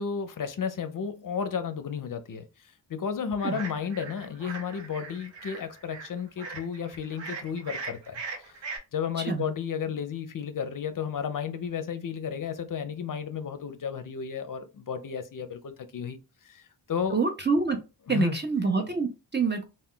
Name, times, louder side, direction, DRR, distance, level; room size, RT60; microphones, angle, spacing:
voice 1, 0.0-2.5 2.9-8.5 8.9-16.2 16.4-17.2 18.1-18.4, left 7 dB, 50° left, 0.5 m, -33 dB
sound 1, 3.4-8.8, right 4 dB, 80° right, 0.9 m, -40 dB
voice 2, 17.1-17.8 18.1-19.6, right 4 dB, 25° right, 0.5 m, -26 dB
2.2 x 2.2 x 3.6 m
cardioid pair, 55°, 44 cm